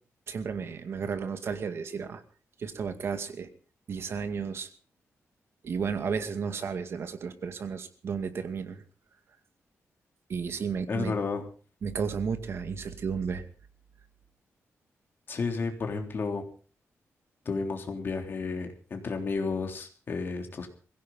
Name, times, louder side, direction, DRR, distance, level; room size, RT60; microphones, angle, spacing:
voice 1, 0.3-2.2 2.6-3.5 3.9-4.7 5.6-8.8 10.3-11.1 11.8-13.4, right 6 dB, 55° right, 9 dB, 2.1 m, -33 dB
voice 2, 10.9-11.4 15.3-16.4 17.4-20.7, left 4 dB, 40° left, 4 dB, 3.4 m, -32 dB
22.5 x 16.5 x 3.9 m, 0.38 s
wide cardioid pair, 165°, 5 cm